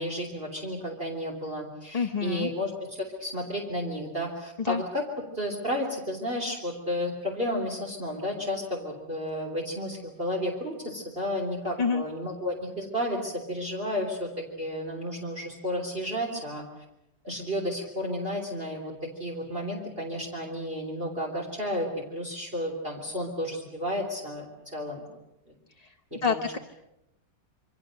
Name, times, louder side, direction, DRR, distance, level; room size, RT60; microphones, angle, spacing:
voice 1, 0.0-5.0 5.3-14.3 14.6-16.6 17.2-18.9 19.2-25.0 26.1-26.6, equal, 35° right, 0 dB, 3.6 m, -32 dB
voice 2, 1.9-2.5 4.6-4.8 11.8-12.0 25.8-26.6, left 6 dB, 30° left, 2 dB, 0.8 m, -28 dB
28.0 x 24.5 x 6.5 m, 0.89 s
omnidirectional pair, 1.8 m